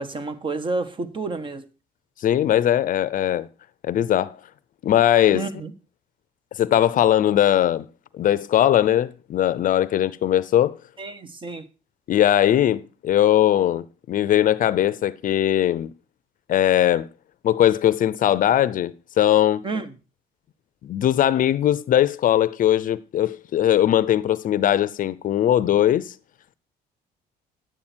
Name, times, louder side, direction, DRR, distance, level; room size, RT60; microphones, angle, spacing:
voice 1, 0.0-1.7 5.3-5.7 11.0-11.7 19.6-19.9, right 3 dB, 30° right, 1.3 m, -30 dB
voice 2, 2.2-3.5 3.8-4.4 4.8-5.5 6.6-7.9 8.1-10.8 12.1-15.9 16.5-17.1 17.4-19.7 20.8-26.1, left 11 dB, 55° left, 0.7 m, -20 dB
10.5 x 8.8 x 4.4 m
cardioid pair, 110°, 17 cm